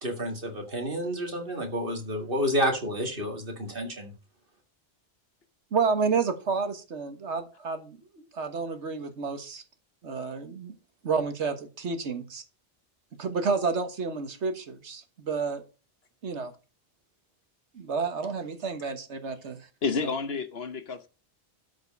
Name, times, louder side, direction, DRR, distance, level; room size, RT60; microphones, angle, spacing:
voice 1, 0.0-4.1, equal, 50° right, 2.4 m, -30 dB
voice 2, 5.7-9.6 10.0-10.7 11.0-12.4 13.2-15.6 16.2-16.5 17.7-19.6, right 5 dB, 80° right, 1.6 m, -30 dB
voice 3, 19.8-21.1, left 5 dB, 60° left, 1.3 m, -30 dB
13.0 x 5.2 x 5.4 m
omnidirectional pair, 1.2 m